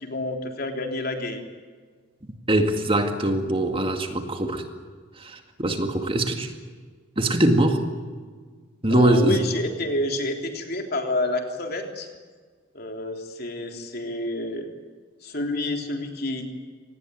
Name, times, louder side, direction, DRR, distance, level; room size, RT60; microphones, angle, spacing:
voice 1, 0.0-1.5 8.9-12.1 12.7-14.7 15.2-16.5, left 1 dB, 50° left, 3 dB, 3.4 m, -28 dB
voice 2, 2.5-4.6 5.2-6.5 7.2-7.8 8.8-9.4, right 1 dB, 25° right, 5 dB, 2.1 m, -22 dB
26.0 x 19.5 x 9.2 m, 1.6 s
head